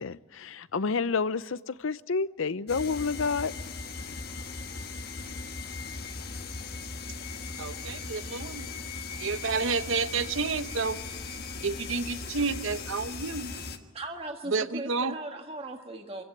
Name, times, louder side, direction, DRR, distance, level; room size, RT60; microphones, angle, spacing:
voice 1, 0.0-3.5 4.1-4.2, left 4 dB, 75° left, 0.6 m, -29 dB
sound 1, 2.7-13.8, left 4 dB, 50° left, 1.5 m, -38 dB
voice 2, 7.6-8.7 9.2-11.0 11.6-13.6 14.5-15.2, right 4 dB, 70° right, 0.9 m, -30 dB
voice 3, 13.9-16.2, right 2 dB, 30° right, 1.7 m, -38 dB
25.5 x 16.0 x 9.2 m
head